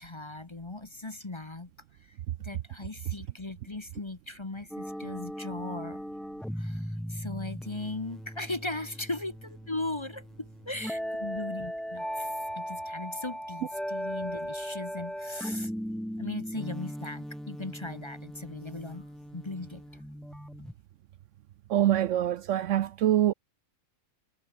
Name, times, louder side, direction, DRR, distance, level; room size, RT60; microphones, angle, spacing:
voice 1, 0.0-1.7 2.4-6.0 6.6-6.8 7.1-9.3 9.7-15.7 16.2-19.1 19.3-19.8, left 2 dB, 20° left, 1.1 m, -38 dB
sound 1, 4.7-20.7, equal, ahead, 0.8 m, -38 dB
voice 2, 21.7-23.3, right 12 dB, 70° right, 0.9 m, -24 dB
omnidirectional pair, 1.5 m